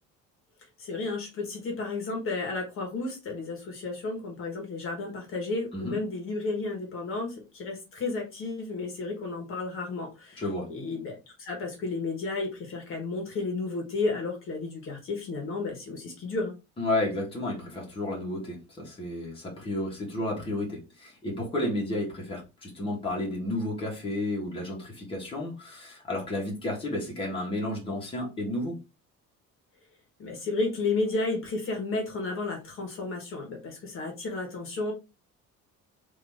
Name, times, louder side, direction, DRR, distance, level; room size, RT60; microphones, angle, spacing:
voice 1, 0.8-16.5 30.2-34.9, left 3 dB, 45° left, 1.4 m, -32 dB
voice 2, 10.4-10.7 16.8-28.8, left 1 dB, 20° left, 1.5 m, -32 dB
3.9 x 2.9 x 3.4 m
cardioid pair, 165°, 29 cm